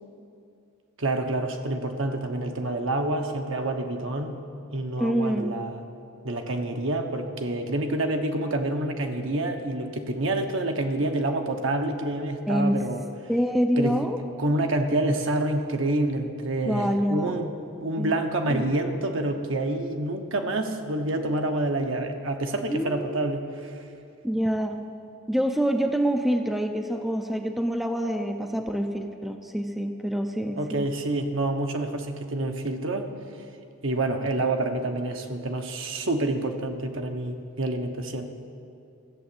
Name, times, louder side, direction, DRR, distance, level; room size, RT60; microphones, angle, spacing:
voice 1, 1.0-4.4 4.7-5.8 6.2-13.1 13.8-14.1 14.4-17.5 17.8-23.8 30.6-33.1 33.8-38.3, right 2 dB, 60° right, 5 dB, 1.0 m, -27 dB
voice 2, 5.0-5.6 12.5-12.8 13.3-14.2 16.7-17.4 18.0-18.2 18.5-18.6 22.7-23.1 24.2-24.8 25.3-30.8, equal, ahead, 4 dB, 0.5 m, -26 dB
14.0 x 7.0 x 8.6 m, 2.5 s
head